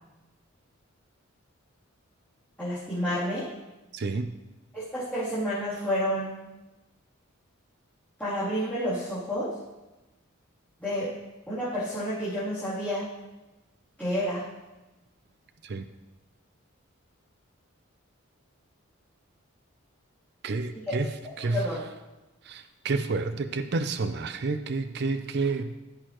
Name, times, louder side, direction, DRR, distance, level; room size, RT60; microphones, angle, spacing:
voice 1, 2.6-3.5 4.7-6.3 8.2-9.5 10.8-11.1 11.5-13.0 14.0-14.4 20.9-21.0 21.4-21.8, equal, 10° left, -14 dB, 3.0 m, -29 dB
voice 2, 3.9-4.3 15.6-15.9 20.4-21.1 21.4-21.6 22.5-25.8, right 3 dB, 50° right, 9 dB, 0.4 m, -29 dB
15.0 x 6.6 x 3.0 m, 1.0 s
head